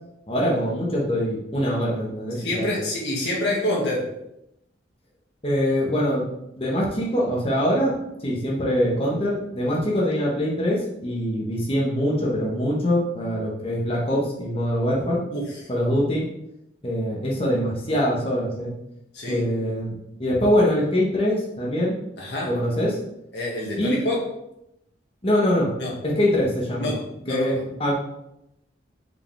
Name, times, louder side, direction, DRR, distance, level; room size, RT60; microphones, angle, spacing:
voice 1, 0.3-2.8 5.4-6.2 6.6-8.0 8.2-15.2 15.7-16.3 16.8-18.7 19.3-19.9 20.2-22.0 22.5-23.0 23.8-24.1 25.2-25.7 26.0-26.9 27.3-27.9, equal, 30° left, -3 dB, 1.6 m, -23 dB
voice 2, 2.4-4.1 15.3-15.4 19.1-19.4 22.2-22.5 23.3-24.2 25.8-25.9 26.8-27.0 27.2-27.5, left 1 dB, 65° left, -4 dB, 2.2 m, -26 dB
6.6 x 5.0 x 3.7 m, 0.84 s
head